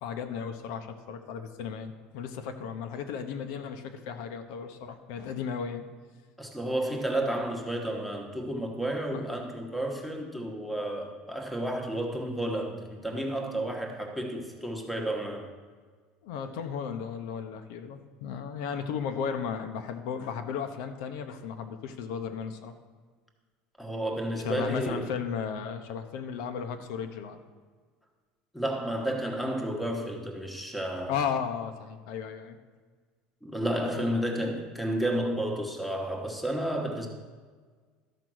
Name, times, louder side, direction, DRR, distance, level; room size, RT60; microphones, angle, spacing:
voice 1, 0.0-5.8 9.1-9.2 16.2-22.7 24.4-27.4 31.1-32.6 33.7-34.3, left 7 dB, 75° left, 7 dB, 0.9 m, -35 dB
voice 2, 6.4-15.5 23.8-25.1 28.5-31.1 33.4-37.1, right 1 dB, ahead, 1 dB, 1.1 m, -31 dB
12.5 x 5.1 x 6.3 m, 1.5 s
cardioid pair, 160°, 3 cm